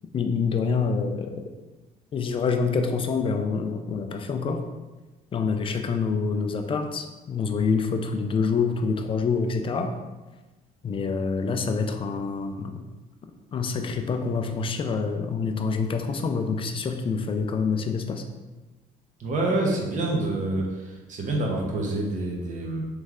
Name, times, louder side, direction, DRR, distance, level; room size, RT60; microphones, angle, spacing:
voice 1, 0.1-1.5 2.1-4.6 5.3-9.9 10.8-12.7 13.5-18.2, left 5 dB, 30° left, 6 dB, 0.4 m, -26 dB
voice 2, 19.2-22.8, right 2 dB, 50° right, -1 dB, 1.0 m, -27 dB
3.2 x 3.2 x 3.6 m, 1.2 s
cardioid pair, 110°, 17 cm